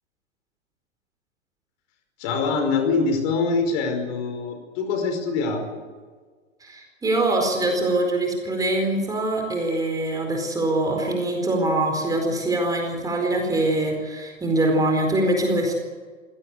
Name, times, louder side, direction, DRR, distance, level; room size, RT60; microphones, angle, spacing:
voice 1, 2.2-5.8, left 4 dB, 35° left, 5 dB, 5.2 m, -24 dB
voice 2, 6.6-15.7, right 1 dB, 10° right, 2 dB, 4.5 m, -23 dB
26.0 x 17.5 x 8.3 m, 1.5 s
figure-of-eight pair, 110°, 38 cm